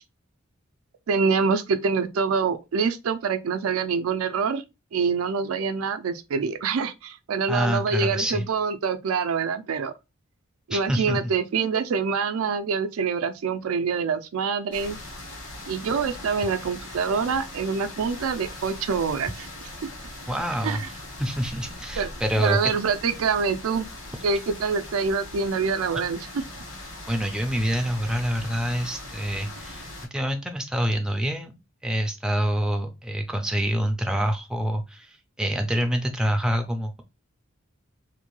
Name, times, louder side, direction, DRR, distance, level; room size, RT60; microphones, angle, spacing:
voice 1, 1.1-4.6 4.9-9.9 10.7-15.0 15.7-19.5 20.6-20.9 22.0-22.1 22.4-23.9 24.2-26.4, right 5 dB, 85° right, 0.4 m, -25 dB
voice 2, 7.5-8.5 10.7-11.2 20.3-20.8 21.2-22.7 27.1-29.8 30.1-31.5 31.8-37.0, equal, 5° right, 0.3 m, -26 dB
sound 1, 14.7-30.1, left 1 dB, 60° left, 1.3 m, -40 dB
2.6 x 2.2 x 2.9 m
head